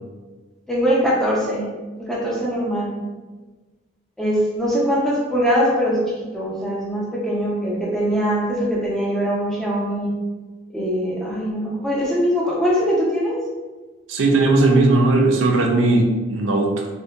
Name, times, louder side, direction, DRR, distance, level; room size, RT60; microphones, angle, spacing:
voice 1, 0.7-1.7 2.0-2.9 4.2-10.1 10.7-13.4, equal, ahead, -6 dB, 0.4 m, -22 dB
voice 2, 14.1-16.9, right 2 dB, 75° right, 1 dB, 0.4 m, -17 dB
2.6 x 2.2 x 2.2 m, 1.3 s
head